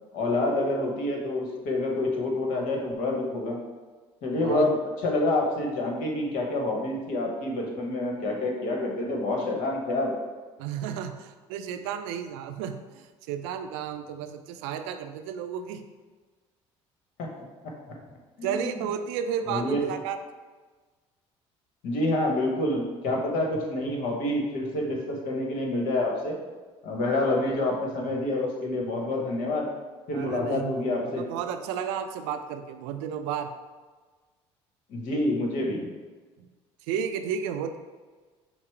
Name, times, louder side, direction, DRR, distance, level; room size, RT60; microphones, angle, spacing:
voice 1, 0.1-3.6 4.2-4.8 5.0-10.1 17.2-17.3 18.4-18.8 19.5-19.8 21.8-26.3 26.8-29.7 30.1-31.2 34.9-35.9, left 2 dB, 70° left, 0 dB, 1.1 m, -27 dB
voice 2, 4.4-4.7 10.6-15.8 18.4-20.2 30.1-33.5 36.4-36.5 36.9-37.8, right 8 dB, 75° right, 8 dB, 0.4 m, -33 dB
5.8 x 2.0 x 4.5 m, 1.4 s
hypercardioid pair, 60°, 14 cm